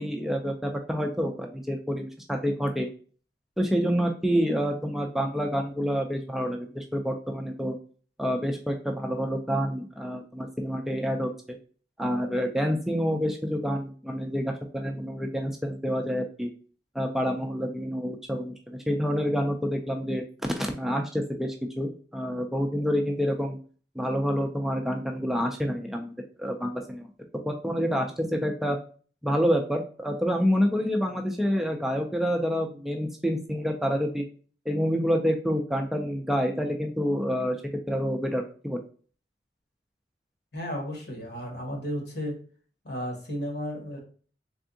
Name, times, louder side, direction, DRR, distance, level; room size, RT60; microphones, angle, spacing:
voice 1, 0.0-2.9 3.6-7.8 8.2-11.3 12.0-16.5 17.0-20.2 20.6-23.6 24.0-27.1 27.3-28.8 29.2-34.3 34.7-37.6 37.9-38.8, equal, ahead, 2 dB, 0.3 m, -28 dB
voice 2, 40.5-42.4 42.8-44.0, equal, 65° left, 1 dB, 1.3 m, -33 dB
3.5 x 3.4 x 2.6 m, 0.41 s
head